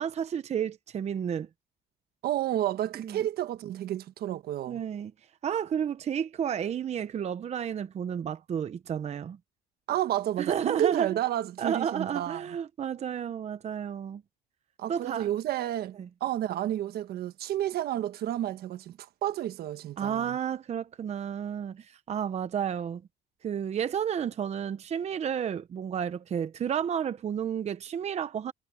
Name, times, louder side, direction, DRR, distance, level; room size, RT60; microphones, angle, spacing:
voice 1, 0.0-1.5 3.0-3.2 4.7-5.1 5.4-9.4 10.4-11.1 11.6-14.2 14.9-15.3 16.0-16.1 20.0-23.0 23.4-28.5, right 8 dB, 40° right, 0.8 m, -31 dB
voice 2, 2.2-4.8 9.9-12.4 14.8-20.4, right 12 dB, 70° right, 1.4 m, -31 dB
cardioid pair, 110°, 17 cm